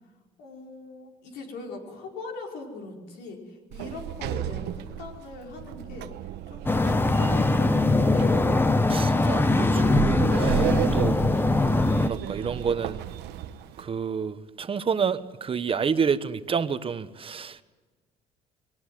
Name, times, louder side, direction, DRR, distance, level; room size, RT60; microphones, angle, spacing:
voice 1, 0.4-8.4, left 3 dB, 85° left, 5.1 m, -40 dB
Sliding door, 3.7-13.9, right 13 dB, 85° right, 1.1 m, -33 dB
sound 1, 6.7-12.1, left 2 dB, 10° left, 1.0 m, -22 dB
voice 2, 8.9-11.2 12.0-13.0 13.8-17.6, right 6 dB, 35° right, 1.2 m, -29 dB
22.0 x 18.0 x 9.3 m
cardioid pair, 110°, 17 cm